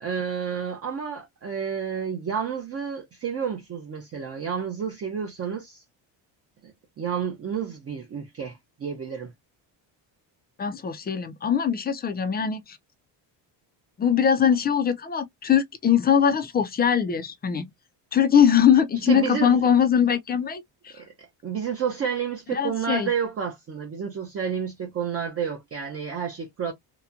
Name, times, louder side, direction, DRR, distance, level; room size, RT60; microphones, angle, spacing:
voice 1, 0.0-5.8 6.6-6.7 7.0-9.3 19.1-19.6 21.0-26.7, right 7 dB, 30° right, 0.6 m, -30 dB
voice 2, 10.6-12.8 14.0-17.6 18.1-20.9 22.5-23.1, left 8 dB, 20° left, 0.4 m, -21 dB
2.9 x 2.2 x 2.4 m
cardioid pair, 135°, 46 cm